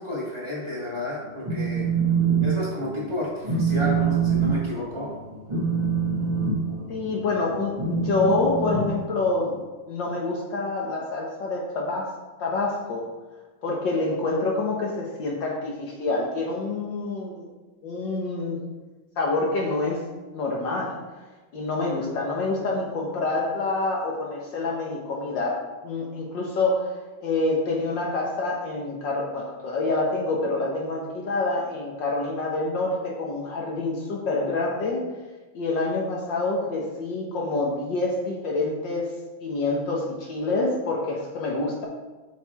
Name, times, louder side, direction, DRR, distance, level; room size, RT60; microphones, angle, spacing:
voice 1, 0.0-1.8 2.4-3.3 3.6-5.1, left 1 dB, 15° right, -9 dB, 2.3 m, -31 dB
Telephone, 1.2-2.5 2.8-3.1 3.4-9.6, right 5 dB, 30° right, 0.5 m, -25 dB
voice 2, 6.9-9.5 9.9-12.1 12.4-13.1 13.6-17.5 17.8-18.6 19.2-20.0 20.3-21.0 21.5-35.0 35.5-39.1 39.4-41.9, left 3 dB, 65° left, -2 dB, 1.6 m, -27 dB
7.0 x 4.7 x 4.6 m, 1.2 s
omnidirectional pair, 2.2 m